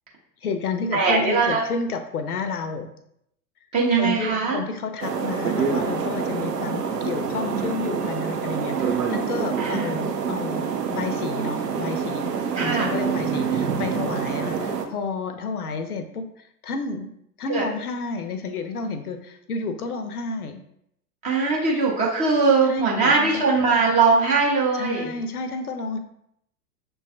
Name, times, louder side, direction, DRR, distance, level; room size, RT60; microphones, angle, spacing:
voice 1, 0.4-2.9 4.0-10.6 10.9-12.3 12.6-17.1 17.4-20.6 22.6-23.4 24.7-26.0, left 4 dB, 70° left, 8 dB, 0.6 m, -31 dB
voice 2, 0.9-1.6 3.7-4.6 9.6-9.9 12.6-12.9 17.5-17.6 21.2-25.1, right 4 dB, 15° right, -4 dB, 0.5 m, -21 dB
sound 1, 5.0-14.9, right 6 dB, 80° right, 0.6 m, -26 dB
6.0 x 2.3 x 2.5 m, 0.76 s
figure-of-eight pair, 95°, 47 cm